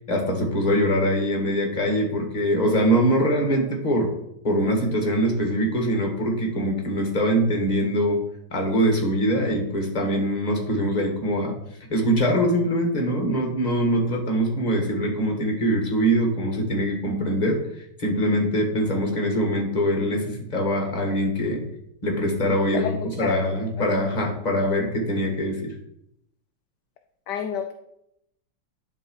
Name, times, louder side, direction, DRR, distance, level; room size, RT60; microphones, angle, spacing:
voice 1, 0.1-4.1 4.4-8.2 8.5-11.6 11.9-17.6 18.0-21.6 22.0-25.8, equal, 20° left, 1 dB, 1.6 m, -23 dB
voice 2, 22.7-23.4 23.8-23.9 27.3-27.7, left 8 dB, 70° left, 5 dB, 1.0 m, -29 dB
10.0 x 3.7 x 4.6 m, 0.78 s
omnidirectional pair, 2.2 m